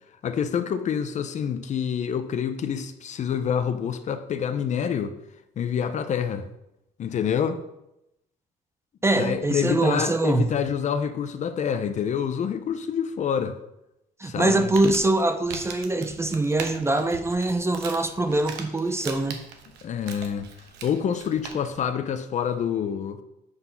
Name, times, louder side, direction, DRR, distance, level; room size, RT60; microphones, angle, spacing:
voice 1, 0.2-5.2 5.6-6.5 7.0-7.6 9.2-13.6 14.2-14.6 19.8-20.5 20.8-23.2, left 8 dB, 45° left, 0.6 m, -27 dB
voice 2, 9.0-10.5 14.2-19.4, right 2 dB, 15° right, 0.5 m, -23 dB
Crumpling crinkling, 14.4-21.9, right 6 dB, 80° right, 1.1 m, -41 dB
8.0 x 3.8 x 5.6 m
cardioid pair, 110°, 17 cm